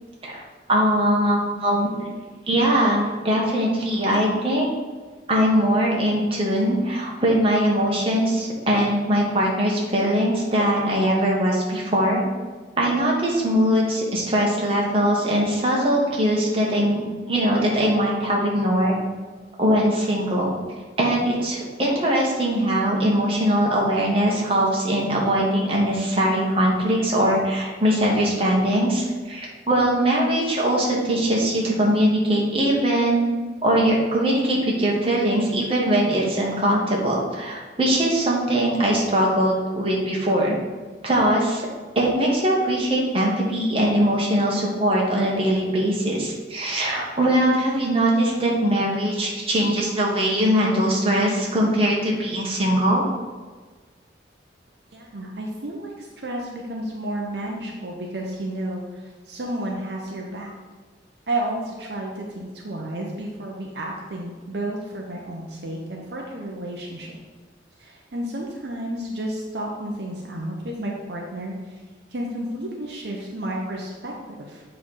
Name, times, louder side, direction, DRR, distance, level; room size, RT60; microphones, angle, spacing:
voice 1, 0.7-2.1 2.5-4.7 5.3-12.2 12.8-17.0 17.3-18.9 19.6-20.5 21.0-33.3 33.6-40.6 41.0-41.6 41.9-53.0, right 1 dB, 30° right, -3 dB, 1.4 m, -21 dB
voice 2, 54.9-60.5 61.3-67.1 67.8-71.8 72.1-74.6, right 1 dB, 60° right, -1 dB, 0.8 m, -31 dB
7.5 x 3.4 x 5.5 m, 1.4 s
head